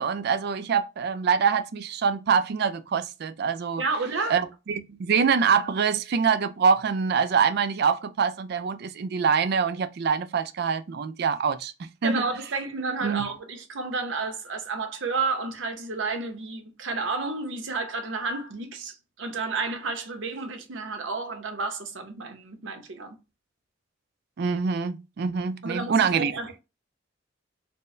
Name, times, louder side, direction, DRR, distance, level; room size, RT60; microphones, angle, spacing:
voice 1, 0.0-3.8 4.3-12.2 13.0-13.3 24.4-26.3, right 6 dB, 55° right, 0.4 m, -25 dB
voice 2, 3.8-4.4 12.0-23.2 25.6-26.6, right 4 dB, 80° right, 0.8 m, -31 dB
4.3 x 2.1 x 3.2 m
head